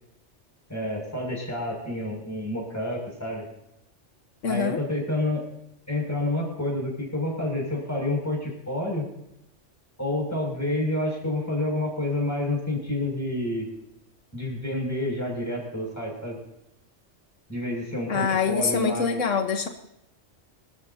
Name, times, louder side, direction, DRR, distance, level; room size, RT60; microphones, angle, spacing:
voice 1, 0.7-3.5 4.5-5.4 5.9-9.0 10.0-13.7 14.3-16.4 17.5-19.3, left 1 dB, 15° left, -1 dB, 6.7 m, -29 dB
voice 2, 4.4-4.8 18.1-19.7, left 5 dB, 90° left, 5 dB, 1.7 m, -25 dB
26.0 x 13.5 x 2.9 m, 0.87 s
omnidirectional pair, 1.2 m